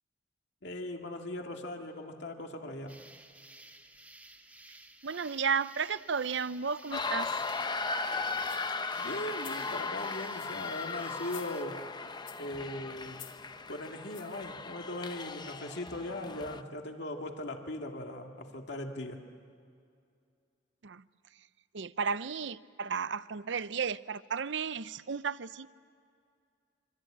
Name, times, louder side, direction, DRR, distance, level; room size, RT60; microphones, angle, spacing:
voice 1, 0.6-3.0 9.0-11.8 12.4-13.2 13.7-19.2, left 1 dB, 60° left, 3 dB, 2.3 m, -39 dB
sound 1, 2.9-11.6, right 2 dB, 5° right, 1.9 m, -54 dB
voice 2, 5.0-7.3 20.8-21.0 21.7-25.7, right 6 dB, 65° right, 16 dB, 0.7 m, -33 dB
sound 2, 6.9-16.6, left 4 dB, 25° left, 0.7 m, -37 dB
sound 3, 8.5-8.8 9.3-9.7 10.2-10.7 11.2-11.8 12.3-12.6 13.1-13.5 14.1-14.4 15.0-15.1, left 11 dB, 80° left, 2.4 m, -52 dB
27.0 x 25.5 x 8.8 m, 2.3 s
head